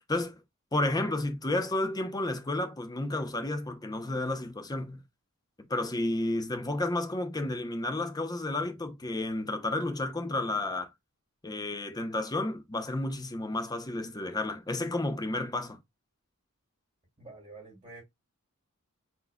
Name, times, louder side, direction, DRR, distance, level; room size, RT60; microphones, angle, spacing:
voice 1, 0.1-0.4 0.7-5.0 5.7-10.9 11.4-15.8, left 2 dB, 15° left, 0.6 m, -31 dB
voice 2, 17.2-18.0, right 3 dB, 25° right, 2.8 m, -48 dB
4.3 x 3.9 x 2.2 m
head